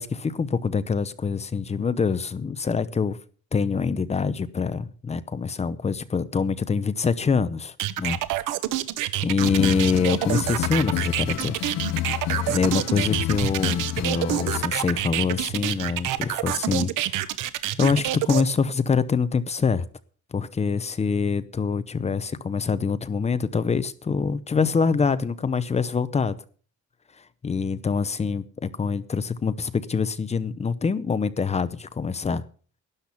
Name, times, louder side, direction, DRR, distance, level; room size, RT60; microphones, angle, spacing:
voice 1, 0.0-3.2 3.5-8.2 9.2-11.6 12.5-17.2 17.8-19.8 20.3-26.4 27.4-32.4, left 5 dB, 20° left, 0.7 m, -25 dB
sound 1, 7.8-18.4, right 14 dB, 90° right, 1.0 m, -27 dB
sound 2, 9.4-14.6, left 14 dB, 55° left, 0.5 m, -30 dB
12.5 x 10.5 x 5.7 m
cardioid pair, 150°, 31 cm